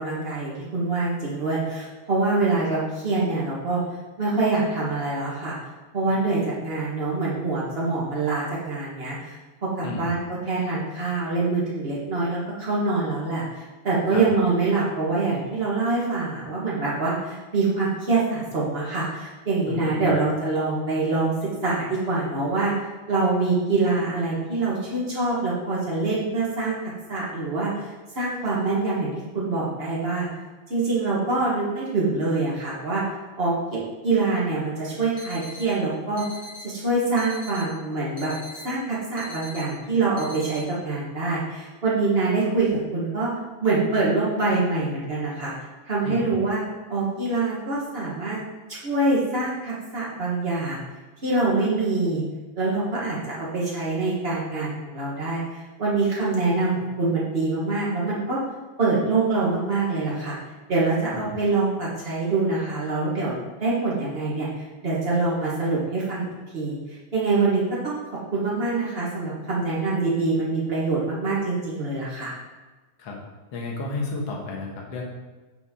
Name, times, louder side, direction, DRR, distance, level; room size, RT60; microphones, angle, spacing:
voice 1, 0.0-3.8 4.2-5.6 5.9-9.4 9.6-22.7 23.1-27.9 28.1-30.3 30.7-33.1 33.4-36.2 36.6-38.4 38.6-43.3 43.6-45.5 45.8-46.6 46.9-48.4 48.7-50.8 51.2-52.2 52.6-58.4 58.8-60.4 60.7-66.2 66.5-68.0 68.3-72.4, right 3 dB, 75° right, -6 dB, 0.5 m, -25 dB
voice 2, 19.7-20.1 46.0-46.4 61.1-61.3 73.0-73.2 73.5-75.0, left 3 dB, 55° left, -1 dB, 2.1 m, -32 dB
sound 1, 35.2-35.7 36.2-36.7 37.2-37.7 38.2-38.7 39.2-39.7 40.2-40.6, left 2 dB, 10° right, 1.9 m, -41 dB
8.9 x 5.6 x 3.7 m, 1.2 s
omnidirectional pair, 3.7 m